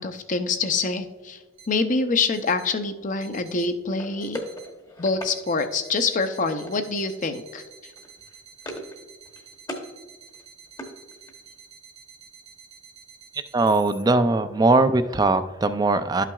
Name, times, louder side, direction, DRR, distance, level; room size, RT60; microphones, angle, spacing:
voice 1, 0.0-1.4 1.7-4.4 5.0-7.6, left 4 dB, 40° left, 8 dB, 0.6 m, -25 dB
sound 1, 1.5-1.7 2.2-2.7 3.2-3.7 4.2-4.7 5.2-14.0, right 6 dB, 75° right, 1.6 m, -49 dB
sound 2, 4.0-5.4 6.7-7.1 7.4-7.6 7.9-9.0 9.3-9.9 10.3-11.5, equal, 20° left, 1.0 m, -39 dB
voice 2, 13.5-16.2, right 2 dB, 20° right, 11 dB, 0.3 m, -20 dB
12.0 x 5.8 x 2.3 m, 1.3 s
head